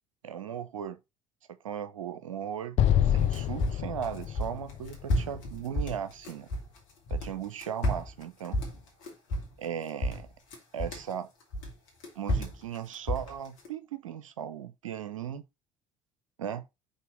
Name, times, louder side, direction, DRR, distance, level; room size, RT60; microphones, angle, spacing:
voice 1, 0.2-1.0 1.6-2.8 3.0-6.5 7.1-8.6 9.6-10.3 10.7-11.3 12.2-15.4 16.4-16.7, right 9 dB, 75° right, 0.7 m, -37 dB
Explosion, 2.8-6.1, left 10 dB, 40° left, 0.4 m, -28 dB
sound 1, 3.2-6.8 7.1-9.7 10.0-11.1 11.5-13.7, equal, 65° left, 2.5 m, -31 dB
5.6 x 4.2 x 5.2 m
figure-of-eight pair, 60°, 17 cm